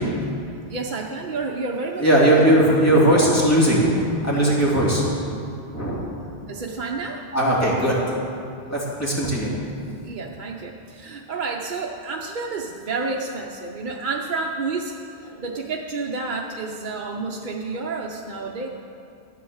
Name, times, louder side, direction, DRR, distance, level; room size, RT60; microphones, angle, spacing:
voice 1, 0.7-2.4 6.5-7.3 10.0-18.7, right 3 dB, 50° right, 0 dB, 0.9 m, -30 dB
voice 2, 2.0-3.9 4.2-5.1 5.7-6.0 7.3-8.3 8.7-9.5 15.3-15.4, right 1 dB, 15° left, -6 dB, 2.8 m, -18 dB
13.0 x 8.6 x 7.1 m, 2.5 s
omnidirectional pair, 1.1 m